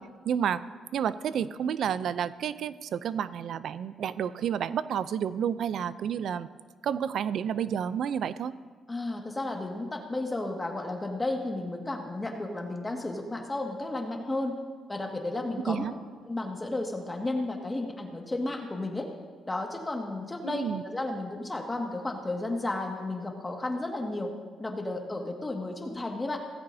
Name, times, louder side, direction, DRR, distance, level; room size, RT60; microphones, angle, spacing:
voice 1, 0.3-0.6 0.9-6.5 6.8-8.6 15.6-15.9 20.4-20.8, right 8 dB, 70° right, 15 dB, 0.5 m, -30 dB
voice 2, 8.9-14.6 14.9-15.9 16.2-19.1 19.5-24.3 24.6-26.4, left 2 dB, 20° left, 2 dB, 1.9 m, -33 dB
17.5 x 15.0 x 2.8 m, 1.5 s
cardioid pair, 90°, 0 cm